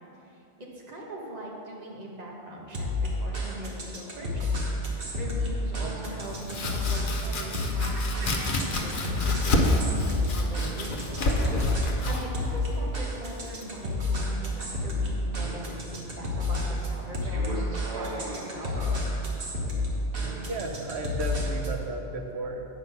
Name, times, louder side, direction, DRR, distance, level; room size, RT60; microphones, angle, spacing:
voice 1, 0.3-18.8, right 1 dB, 40° right, -2 dB, 1.3 m, -41 dB
sound 1, 2.7-21.8, left 1 dB, 60° right, 1.4 m, -30 dB
Domestic sounds home sounds, 6.2-13.9, left 2 dB, 55° left, 0.9 m, -29 dB
voice 2, 20.2-22.7, right 2 dB, 90° right, 4 dB, 1.0 m, -34 dB
8.6 x 5.3 x 5.7 m, 3.0 s
omnidirectional pair, 1.1 m